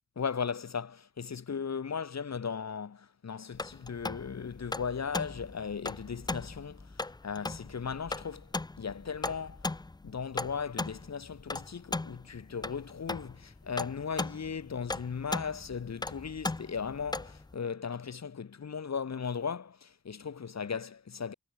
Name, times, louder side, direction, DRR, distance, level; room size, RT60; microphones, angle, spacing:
voice 1, 0.2-8.5 8.8-9.7 10.0-21.3, left 6 dB, 50° left, 0.7 m, -37 dB
sound 1, 3.5-17.5, left 2 dB, 15° left, 0.3 m, -38 dB
wide cardioid pair, 45°, 34 cm